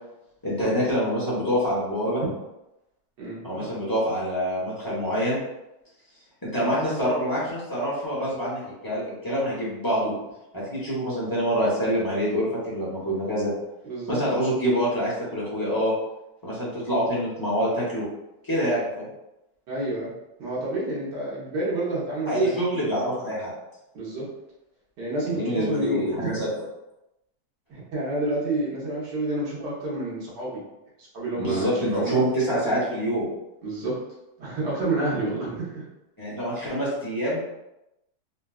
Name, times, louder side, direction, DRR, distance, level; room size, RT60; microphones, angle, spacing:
voice 1, 0.4-2.2 3.4-5.4 6.4-10.1 10.5-13.5 14.1-15.9 16.4-18.1 18.4-19.1 22.3-23.5 25.2-26.5 31.4-33.3 36.2-37.4, equal, 25° left, -8 dB, 0.5 m, -26 dB
voice 2, 3.2-3.7 13.8-14.2 19.7-20.1 20.4-23.2 23.9-24.3 25.0-26.3 27.7-30.6 31.0-32.1 33.6-33.9 34.4-35.9, right 2 dB, 75° right, -6 dB, 1.7 m, -29 dB
3.9 x 2.3 x 2.3 m, 0.91 s
omnidirectional pair, 1.9 m